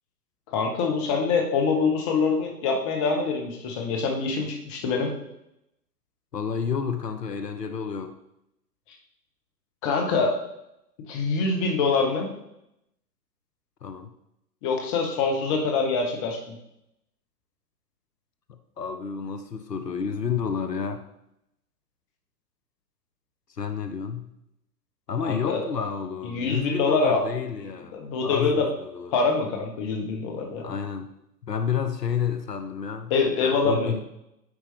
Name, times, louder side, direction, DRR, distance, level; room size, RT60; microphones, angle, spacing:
voice 1, 0.5-5.1 9.8-10.3 11.1-12.3 14.6-16.5 25.2-25.6 26.2-27.2 27.9-28.7 29.1-30.6 33.1-34.0, left 4 dB, 20° left, 2 dB, 0.8 m, -25 dB
voice 2, 6.3-8.1 13.8-14.1 18.5-21.0 23.5-24.3 25.1-28.0 28.2-29.1 30.6-31.1 31.4-33.1 33.4-34.0, left 6 dB, 75° left, 9 dB, 0.9 m, -30 dB
9.6 x 4.7 x 3.3 m, 0.82 s
figure-of-eight pair, 125°, 49 cm